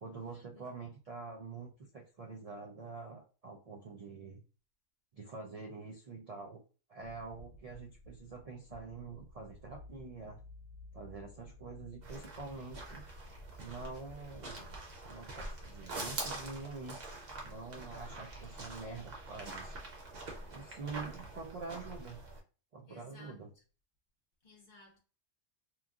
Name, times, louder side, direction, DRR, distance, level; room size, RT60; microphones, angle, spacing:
voice 1, 0.0-4.4 5.1-6.6 6.9-10.4 10.9-13.0 13.6-14.7 15.0-17.1 17.4-19.7 20.5-22.2 22.7-23.5, right 4 dB, 75° right, 0.3 m, -46 dB
sound 1, 7.0-19.9, left 1 dB, 75° left, 1.0 m, -56 dB
sound 2, 12.0-22.4, right 2 dB, 55° right, 0.9 m, -45 dB
voice 2, 22.9-23.6 24.4-25.0, left 3 dB, 50° left, 0.7 m, -58 dB
3.0 x 2.4 x 2.4 m
omnidirectional pair, 1.3 m